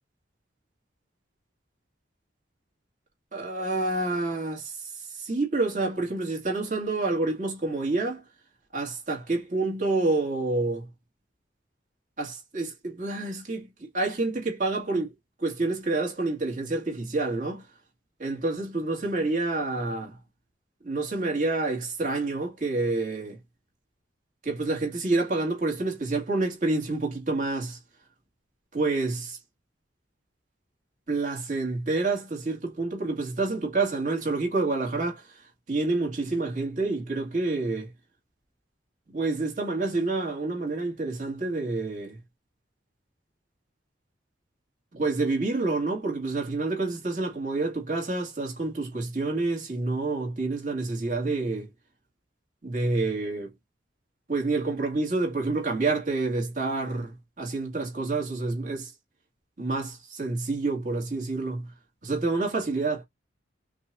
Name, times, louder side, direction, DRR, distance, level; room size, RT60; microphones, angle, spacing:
voice 1, 3.3-8.2 8.7-10.9 12.2-15.1 15.4-17.7 18.2-20.2 20.8-23.4 24.4-27.8 28.7-29.4 31.1-35.3 35.7-37.9 39.1-42.2 44.9-51.7 52.6-53.5 54.3-58.9 59.6-61.7 62.0-63.0, right 3 dB, 40° right, 2.1 m, -28 dB
5.9 x 2.5 x 2.7 m
head